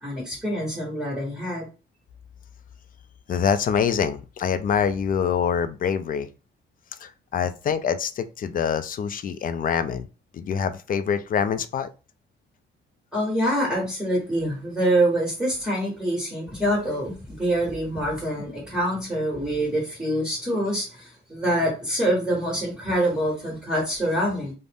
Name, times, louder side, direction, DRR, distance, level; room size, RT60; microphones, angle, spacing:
voice 1, 0.0-1.7 13.1-24.5, right 1 dB, 5° right, -5 dB, 1.4 m, -25 dB
voice 2, 3.3-6.3 7.0-10.1 10.3-11.9, left 7 dB, 45° left, 12 dB, 0.4 m, -25 dB
2.5 x 2.0 x 3.4 m, 0.31 s
cardioid pair, 90°, 20 cm